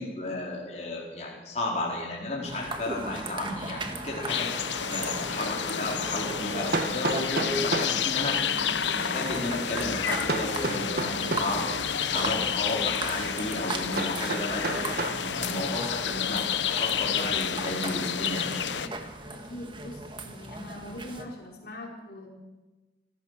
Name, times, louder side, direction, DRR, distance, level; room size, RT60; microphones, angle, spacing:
voice 1, 0.0-8.4 8.9-18.9, left 2 dB, 40° left, -3 dB, 4.7 m, -33 dB
sound 1, 2.4-21.2, right 2 dB, 25° right, 2.0 m, -38 dB
sound 2, 4.3-18.9, left 8 dB, 85° left, 0.9 m, -30 dB
Hammer, 5.1-5.2 6.7-8.0 10.3-11.6 14.0-15.2, right 3 dB, 55° right, 1.6 m, -30 dB
voice 2, 19.3-22.3, left 1 dB, 60° left, -1 dB, 4.8 m, -42 dB
26.5 x 15.5 x 6.8 m, 1.2 s
head